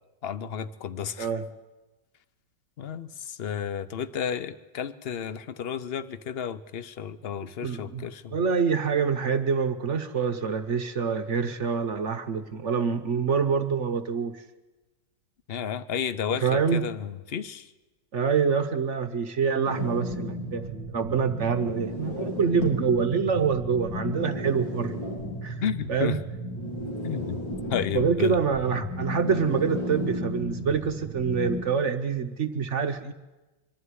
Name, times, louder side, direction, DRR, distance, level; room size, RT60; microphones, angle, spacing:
voice 1, 0.2-1.3 2.8-8.3 15.5-17.7 25.6-26.2 27.0-27.4 27.7-28.4 28.7-28.8, left 8 dB, 50° left, 13 dB, 0.7 m, -32 dB
voice 2, 7.6-14.4 16.4-16.8 18.1-25.0 25.4-25.6 25.9-26.2 27.9-33.1, right 6 dB, 50° right, 9 dB, 1.0 m, -26 dB
sound 1, 19.6-31.6, equal, 85° left, 4.4 m, -34 dB
24.5 x 11.5 x 9.7 m, 1.1 s
omnidirectional pair, 2.0 m